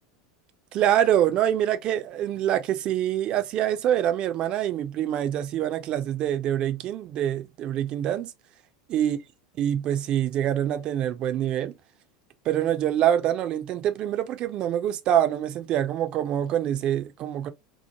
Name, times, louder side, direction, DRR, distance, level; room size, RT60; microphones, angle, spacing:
voice 1, 0.7-8.3 8.9-9.2 9.6-11.7 12.5-17.5, right 11 dB, 40° right, 0.5 m, -25 dB
3.0 x 2.1 x 2.8 m
figure-of-eight pair, 80°, 2 cm